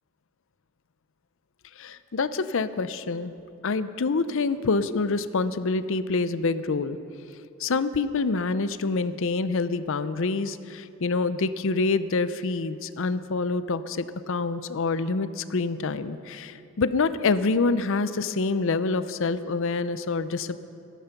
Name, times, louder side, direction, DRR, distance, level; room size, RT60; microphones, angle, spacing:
voice 1, 1.8-3.3 3.6-7.0 7.6-20.6, left 3 dB, 60° left, 13 dB, 0.6 m, -26 dB
16.5 x 12.5 x 5.9 m, 2.7 s
head